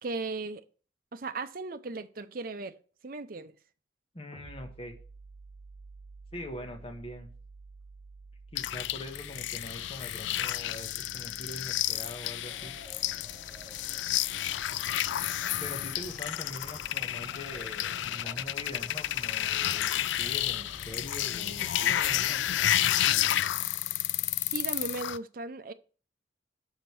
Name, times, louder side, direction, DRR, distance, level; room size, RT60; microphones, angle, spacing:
voice 1, 0.0-0.6 1.1-2.8 3.0-3.6 24.5-25.7, right 3 dB, 50° right, 0.6 m, -36 dB
voice 2, 4.1-4.9 6.3-7.3 8.5-12.7 15.6-19.9 20.2-22.5, left 1 dB, 30° left, 1.3 m, -43 dB
sound 1, 4.3-15.7, right 3 dB, 50° left, 2.4 m, -53 dB
sound 2, 8.6-25.2, left 12 dB, 80° left, 0.3 m, -31 dB
sound 3, 12.5-22.7, equal, ahead, 3.0 m, -51 dB
6.4 x 5.1 x 5.9 m
head